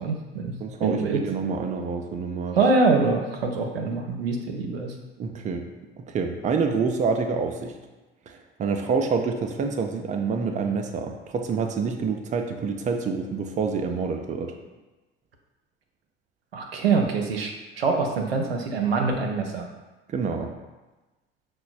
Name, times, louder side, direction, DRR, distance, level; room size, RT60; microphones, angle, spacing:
voice 1, 0.0-0.5 0.8-1.2 2.6-4.9 16.5-19.7, right 4 dB, 85° right, 2 dB, 0.5 m, -24 dB
voice 2, 0.6-2.6 5.2-5.6 6.0-7.7 8.3-14.5 20.1-20.5, right 5 dB, 25° right, 4 dB, 0.4 m, -27 dB
5.8 x 2.1 x 2.4 m, 1.2 s
figure-of-eight pair, 60°, 29 cm